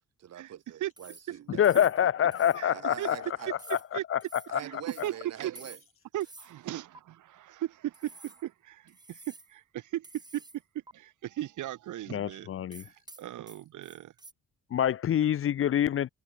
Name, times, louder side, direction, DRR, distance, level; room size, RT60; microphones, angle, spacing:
voice 1, 0.2-1.7 2.7-3.5 4.5-5.8, right 10 dB, 60° right, 1.5 m, -44 dB
sound 1, 1.0-1.3 1.6-2.0 2.3-2.6 2.9-3.2 3.6-3.9 4.2-4.5 4.9-5.1 5.6-5.9 6.2-6.5 6.9-7.0 7.9-8.4 8.9-9.5 10.0-10.6 10.9-11.0 12.7-14.3, right 2 dB, 15° right, 1.9 m, -51 dB
voice 2, 1.6-3.2 3.7-3.8 4.1-4.2 4.5-4.6 12.1-12.8 14.7-16.1, left 10 dB, 45° left, 0.6 m, -25 dB
voice 3, 4.6-5.7 6.1-12.5 12.8-14.1, right 13 dB, 80° right, 2.6 m, -37 dB
cardioid pair, 90°, 30 cm